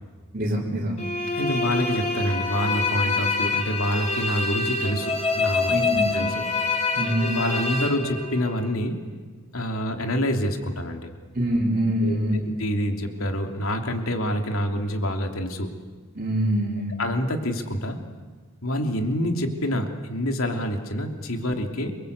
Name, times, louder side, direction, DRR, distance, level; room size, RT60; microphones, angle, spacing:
voice 1, 0.3-1.0 5.7-6.1 6.9-7.3 11.3-12.5 16.1-16.9, right 1 dB, 40° right, -5 dB, 3.7 m, -24 dB
sound 1, 1.0-8.7, left 3 dB, 30° left, 3.0 m, -26 dB
voice 2, 1.3-5.8 6.1-6.4 6.7-9.0 9.5-11.1 12.0-15.7 17.0-18.0 18.6-22.0, equal, 70° left, 5 dB, 3.0 m, -27 dB
30.0 x 24.0 x 8.2 m, 1.4 s
head